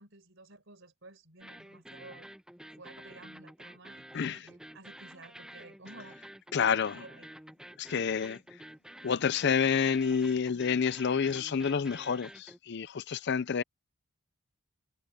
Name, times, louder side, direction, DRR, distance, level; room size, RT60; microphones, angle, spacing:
voice 1, 0.0-2.3 2.8-6.2 6.7-7.4, right 2 dB, 60° right, 5.0 m, -53 dB
sound 1, 1.4-12.6, right 1 dB, 5° right, 0.8 m, -50 dB
voice 2, 4.1-4.5 6.5-7.0 7.8-8.4 9.0-13.6, left 6 dB, 50° left, 0.5 m, -29 dB
head